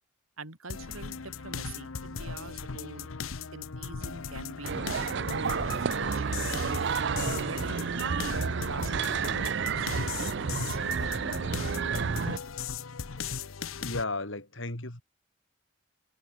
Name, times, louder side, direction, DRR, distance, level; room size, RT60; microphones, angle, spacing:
voice 1, 0.4-3.1 3.5-4.8 5.3-6.5 6.8-10.8, right 2 dB, 90° right, 4.3 m, -43 dB
sound 1, 0.7-14.0, left 5 dB, 85° left, 0.9 m, -38 dB
sound 2, 4.6-12.4, right 6 dB, 55° right, 0.5 m, -31 dB
voice 2, 13.8-15.0, left 2 dB, 65° left, 3.7 m, -34 dB
head